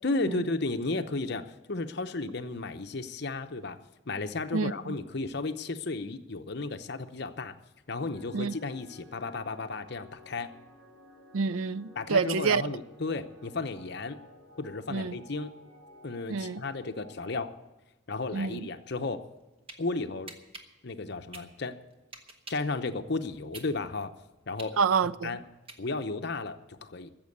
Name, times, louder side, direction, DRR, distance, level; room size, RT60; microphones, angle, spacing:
voice 1, 0.0-3.8 4.1-7.6 7.9-10.5 12.0-14.2 14.6-15.5 16.0-17.5 18.1-19.2 19.8-20.3 20.8-21.7 22.5-24.1 24.5-24.7 25.2-25.4 25.8-27.1, left 3 dB, 55° left, 0.8 m, -33 dB
voice 2, 4.5-5.0 8.3-8.5 11.3-12.6 14.9-15.2 16.3-16.6 18.3-18.7 24.8-25.4, right 5 dB, 85° right, 0.5 m, -28 dB
sound 1, 8.1-17.5, left 1 dB, 45° right, 4.3 m, -54 dB
sound 2, 19.4-19.8 20.3-22.7 23.2-26.2, right 2 dB, 25° right, 1.3 m, -47 dB
14.0 x 7.5 x 9.4 m
head